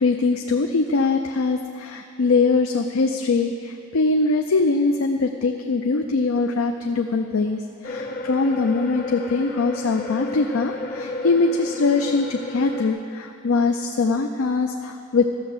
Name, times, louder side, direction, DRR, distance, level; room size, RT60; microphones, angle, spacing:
voice 1, 0.0-15.3, left 3 dB, 85° left, 5 dB, 0.5 m, -22 dB
sound 1, 7.8-12.9, left 2 dB, 45° left, 0.9 m, -32 dB
13.0 x 6.6 x 7.9 m, 2.6 s
head